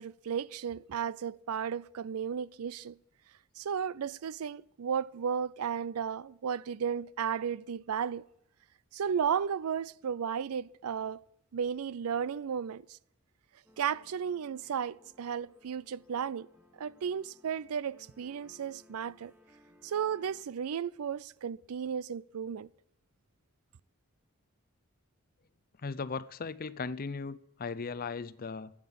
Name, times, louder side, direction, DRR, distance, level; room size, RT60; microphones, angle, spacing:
voice 1, 0.0-3.0 3.6-8.3 8.9-11.2 11.5-13.0 13.8-16.5 16.8-19.3 19.8-22.7, right 7 dB, 85° right, 0.4 m, -34 dB
sound 1, 13.6-20.4, left 1 dB, 10° right, 1.2 m, -62 dB
voice 2, 25.8-28.7, left 4 dB, 40° left, 0.5 m, -37 dB
11.5 x 8.9 x 9.9 m
head